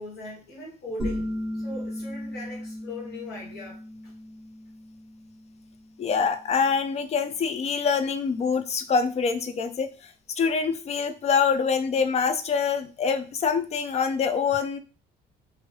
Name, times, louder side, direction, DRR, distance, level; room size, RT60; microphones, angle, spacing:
voice 1, 0.0-4.1, left 2 dB, 70° left, -5 dB, 1.1 m, -40 dB
sound 1, 1.0-6.4, left 1 dB, ahead, 1.2 m, -36 dB
voice 2, 6.0-14.8, left 5 dB, 40° left, 10 dB, 0.5 m, -25 dB
3.0 x 2.7 x 3.1 m, 0.34 s
cardioid pair, 110°, 17 cm